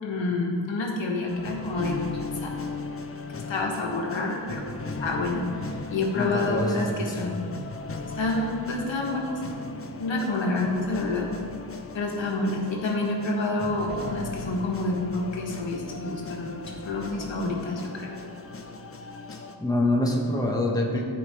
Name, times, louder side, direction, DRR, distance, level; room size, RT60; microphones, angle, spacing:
voice 1, 0.0-2.5 3.5-4.6 5.0-5.5 5.9-7.4 8.2-9.4 10.0-11.3 11.9-18.1 20.9-21.0, left 2 dB, 80° left, -1 dB, 1.3 m, -28 dB
sound 1, 1.3-19.6, left 3 dB, 30° left, 0.6 m, -37 dB
voice 2, 6.2-7.3 19.6-21.0, left 1 dB, 10° left, -1 dB, 1.1 m, -26 dB
13.0 x 4.8 x 3.4 m, 2.3 s
wide cardioid pair, 90°, 44 cm